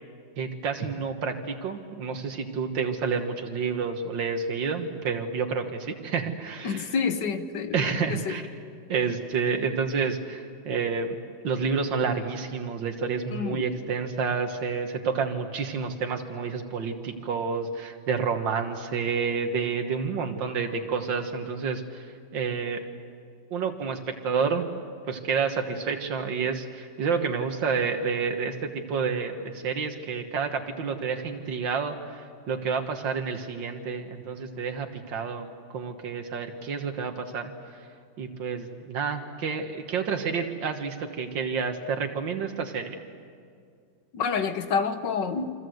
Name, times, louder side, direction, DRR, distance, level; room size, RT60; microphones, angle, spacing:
voice 1, 0.4-6.9 7.7-8.5 8.9-11.2 11.4-22.8 23.5-24.6 25.1-37.5 38.2-43.0, right 5 dB, 85° right, 5 dB, 2.1 m, -29 dB
voice 2, 6.6-8.4 13.3-13.7 44.1-45.5, left 5 dB, 70° left, 9 dB, 1.9 m, -28 dB
28.5 x 24.5 x 7.9 m, 2.3 s
omnidirectional pair, 2.0 m